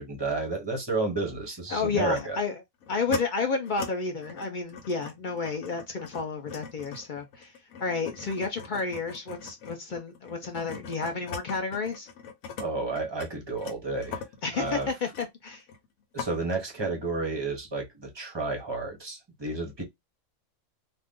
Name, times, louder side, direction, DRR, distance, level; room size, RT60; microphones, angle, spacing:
voice 1, 0.0-2.4 12.6-14.2 14.5-14.9 16.1-19.8, right 3 dB, 25° right, 0.6 m, -31 dB
voice 2, 1.7-2.5 2.9-7.5 7.8-12.1 14.4-15.6, left 4 dB, 55° left, 0.5 m, -31 dB
sound 1, 2.2-2.3 2.8-3.2 3.6-3.9 4.2-12.7 12.9-15.9 16.2-16.3, left 6 dB, 90° left, 1.1 m, -41 dB
2.5 x 2.3 x 3.5 m
omnidirectional pair, 1.4 m